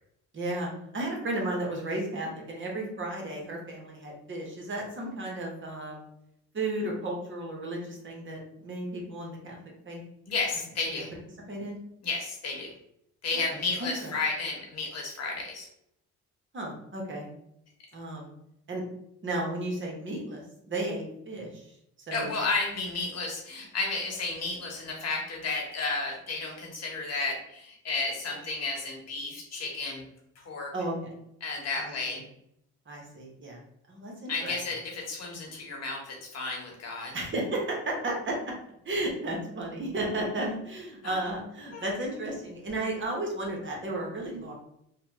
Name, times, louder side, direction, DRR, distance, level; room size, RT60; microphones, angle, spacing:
voice 1, 0.3-6.0 6.5-10.0 10.9-11.0 11.5-11.8 13.8-14.1 16.5-17.3 17.9-18.3 18.7-18.8 19.2-21.7 22.1-22.3 30.7-31.1 31.8-32.2 32.9-33.6 33.9-34.5 37.1-38.3 38.8-44.5, right 1 dB, 40° right, -1 dB, 1.0 m, -34 dB
voice 2, 10.3-11.1 12.0-12.7 13.2-15.7 22.1-30.0 30.4-30.7 31.4-32.2 34.3-37.2 41.0-41.2 41.7-41.8, left 3 dB, 55° left, 0 dB, 1.1 m, -32 dB
3.1 x 2.1 x 3.0 m, 0.77 s
cardioid pair, 90°, 30 cm